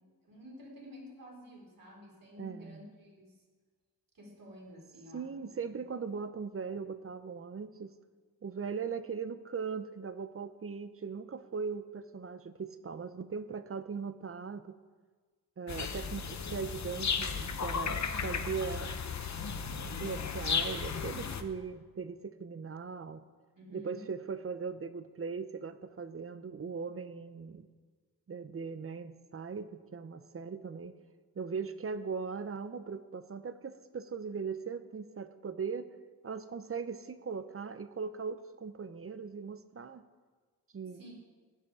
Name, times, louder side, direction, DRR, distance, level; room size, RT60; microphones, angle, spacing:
voice 1, 0.2-3.4 4.1-5.2 5.6-5.8 23.6-24.0 40.9-41.1, equal, 55° right, -3 dB, 4.1 m, -51 dB
voice 2, 2.4-2.8 5.1-7.9 8.4-14.7 15.6-19.0 20.0-23.2 23.7-27.7 28.3-31.0 31.4-35.9 36.2-40.1 40.7-41.1, right 5 dB, 35° right, 12 dB, 0.7 m, -39 dB
sound 1, 15.7-21.4, left 6 dB, 45° left, 0.9 m, -35 dB
16.0 x 10.5 x 4.8 m, 1.5 s
wide cardioid pair, 125°, 39 cm